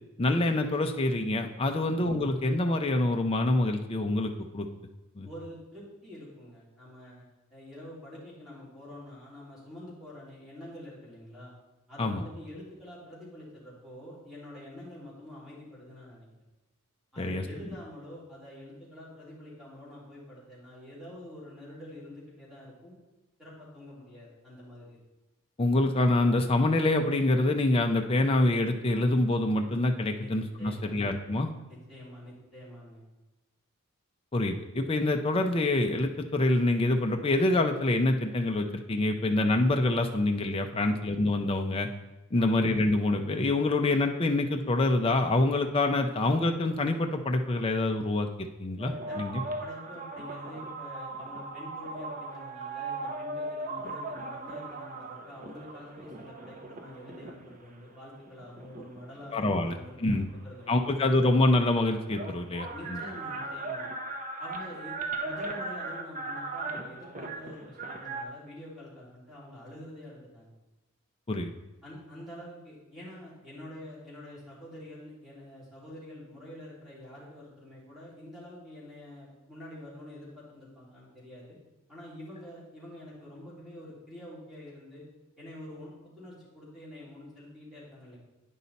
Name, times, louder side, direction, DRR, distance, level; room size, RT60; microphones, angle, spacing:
voice 1, 0.2-4.7 5.2-5.3 12.0-12.2 17.2-17.4 25.6-31.5 34.3-41.9 42.3-49.4 59.3-60.3 60.7-63.0 71.3-71.5, left 2 dB, 25° left, 4 dB, 0.5 m, -26 dB
voice 2, 5.2-11.5 11.9-16.3 17.1-23.0 23.4-25.0 30.1-30.3 30.6-31.0 31.7-33.0 40.8-41.2 42.4-42.7 49.1-49.3 49.6-60.9 62.7-63.9 64.4-64.9 65.2-70.5 71.8-81.6 81.9-85.0 85.4-88.2, left 1 dB, ahead, -8 dB, 2.9 m, -46 dB
sound 1, 48.8-57.6 58.3-60.0 61.2-61.3 61.4-68.2, right 2 dB, 35° right, 0.7 m, -38 dB
9.3 x 5.5 x 4.1 m, 1.1 s
head